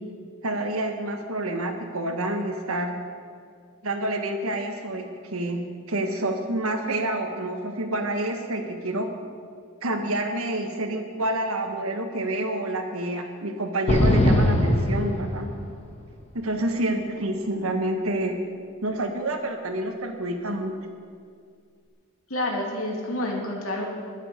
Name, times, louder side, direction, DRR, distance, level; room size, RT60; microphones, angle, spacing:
voice 1, 0.4-3.0 3.8-5.1 5.3-5.6 5.9-9.1 9.8-15.5 16.3-18.4 18.8-20.7, right 1 dB, 85° right, 4 dB, 1.5 m, -28 dB
sound 1, 13.9-15.8, left 1 dB, 30° left, 1.3 m, -21 dB
voice 2, 22.3-23.9, left 1 dB, 85° left, 0 dB, 2.5 m, -28 dB
22.0 x 7.4 x 5.3 m, 2.2 s
head